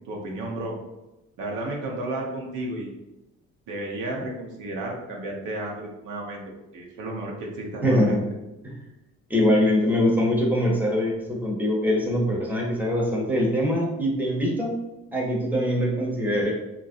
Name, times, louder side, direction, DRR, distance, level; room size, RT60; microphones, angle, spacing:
voice 1, 0.1-0.7 1.4-2.9 3.7-6.4 6.7-8.2, right 1 dB, 80° right, -1 dB, 0.8 m, -32 dB
voice 2, 7.8-8.2 8.6-8.8 9.3-14.7 15.1-16.5, left 1 dB, 5° right, -2 dB, 0.8 m, -23 dB
3.0 x 2.6 x 2.6 m, 0.95 s
cardioid pair, 90°, 30 cm